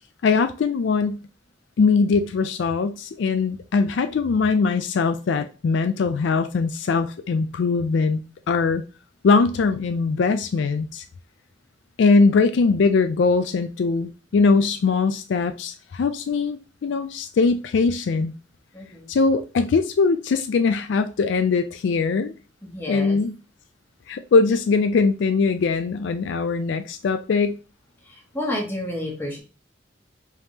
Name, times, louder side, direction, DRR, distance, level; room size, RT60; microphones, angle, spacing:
voice 1, 0.2-1.2 1.8-8.8 9.2-11.0 12.0-18.4 19.1-22.3 22.9-23.3 24.1-27.6, left 4 dB, 70° left, 0.3 m, -21 dB
voice 2, 18.7-19.1 22.6-23.2 28.0-29.4, left 1 dB, 10° left, 1.3 m, -30 dB
4.7 x 3.4 x 2.7 m
head